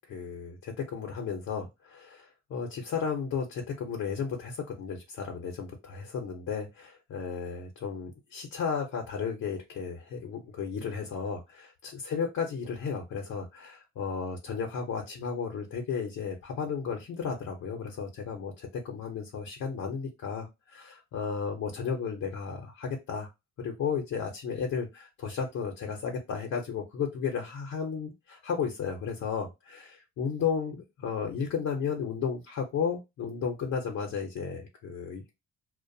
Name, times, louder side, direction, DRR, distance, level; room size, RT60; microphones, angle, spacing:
voice 1, 0.1-23.3 23.6-35.2, left 6 dB, 65° left, 0.8 m, -34 dB
2.4 x 2.2 x 2.6 m
cardioid pair, 90°, 30 cm